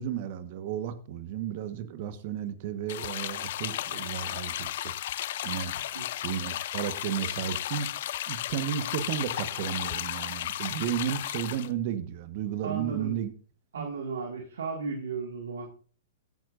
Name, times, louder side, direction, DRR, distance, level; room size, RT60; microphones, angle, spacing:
voice 1, 0.0-4.9 5.4-5.7 6.2-7.9 8.3-13.3 13.8-13.9, right 9 dB, 50° right, 11 dB, 1.3 m, -33 dB
sound 1, 2.9-11.7, left 13 dB, 60° left, 0.6 m, -34 dB
voice 2, 5.7-6.1 12.6-13.1 13.7-15.7, right 4 dB, 75° right, 1 dB, 2.1 m, -35 dB
16.0 x 9.0 x 2.6 m, 0.40 s
hypercardioid pair, 115°, 0 cm